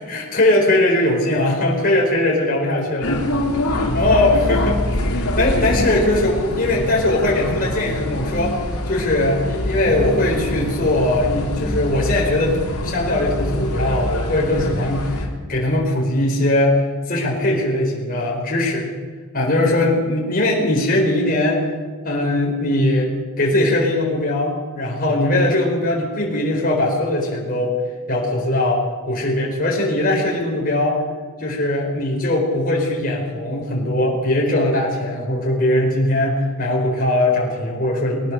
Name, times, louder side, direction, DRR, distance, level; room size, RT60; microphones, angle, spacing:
voice 1, 0.0-3.2 3.9-4.8 5.1-8.5 8.9-12.6 12.8-18.9 19.3-21.7 22.0-27.8 28.1-31.0 31.4-38.3, left 1 dB, 40° left, -2 dB, 4.6 m, -20 dB
sound 1, 3.0-15.3, left 1 dB, 85° left, 3.6 m, -24 dB
21.5 x 18.5 x 6.8 m, 1.5 s
head